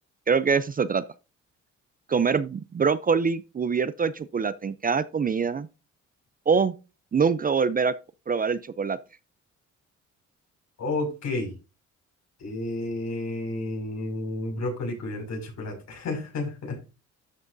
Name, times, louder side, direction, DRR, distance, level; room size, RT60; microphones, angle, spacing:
voice 1, 0.3-1.0 2.1-5.7 6.5-6.7 7.1-7.9 8.3-9.0, right 5 dB, 30° right, 0.5 m, -24 dB
voice 2, 10.8-11.5 12.4-16.8, left 2 dB, 60° left, 5.8 m, -31 dB
12.5 x 6.1 x 2.6 m
cardioid pair, 90°, 30 cm